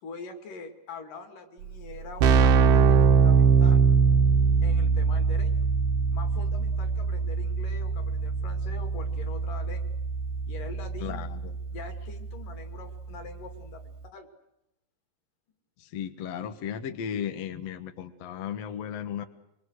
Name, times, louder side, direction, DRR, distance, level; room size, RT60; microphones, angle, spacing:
voice 1, 0.0-3.9 4.6-5.7 6.1-10.0 10.5-11.2 11.7-14.3, left 4 dB, 50° left, 6 dB, 3.8 m, -44 dB
Keyboard (musical), 1.6-1.7 1.9-12.5, right 5 dB, 70° right, 2.7 m, -23 dB
voice 2, 11.0-11.6 15.8-19.2, left 9 dB, 75° left, 8 dB, 1.5 m, -35 dB
26.0 x 24.0 x 6.5 m, 0.86 s
omnidirectional pair, 5.1 m